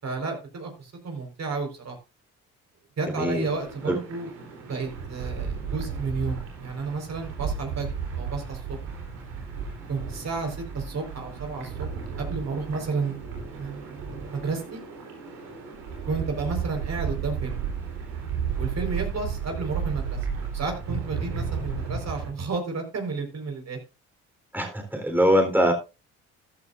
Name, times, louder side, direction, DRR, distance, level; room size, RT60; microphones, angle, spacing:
voice 1, 0.0-2.0 3.0-4.3 4.6-7.9 8.1-8.8 9.9-11.9 12.2-14.8 16.0-17.6 18.6-20.2 20.5-23.8, right 4 dB, 50° right, 3 dB, 4.6 m, -32 dB
voice 2, 3.1-3.5 3.9-4.0 24.5-25.7, equal, 5° right, 3 dB, 3.8 m, -22 dB
sound 1, 3.4-22.3, right 6 dB, 90° right, 3.7 m, -33 dB
14.5 x 11.5 x 2.6 m, 0.29 s
hypercardioid pair, 55°, 34 cm